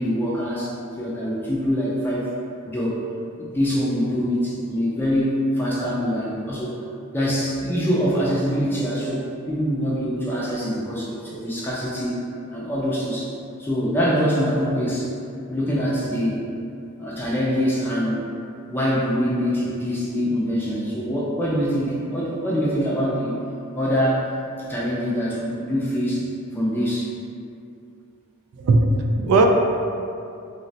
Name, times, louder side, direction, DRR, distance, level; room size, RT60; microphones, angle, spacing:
voice 1, 0.0-2.3 2.7-3.0 3.4-6.8 7.1-12.2 12.5-13.3 13.6-15.1 15.5-16.5 17.0-18.3 18.7-23.4 23.7-24.2 24.6-27.1, equal, 10° left, -6 dB, 0.3 m, -24 dB
voice 2, 28.6-29.5, right 3 dB, 90° right, 3 dB, 0.3 m, -18 dB
3.8 x 2.1 x 2.7 m, 2.6 s
head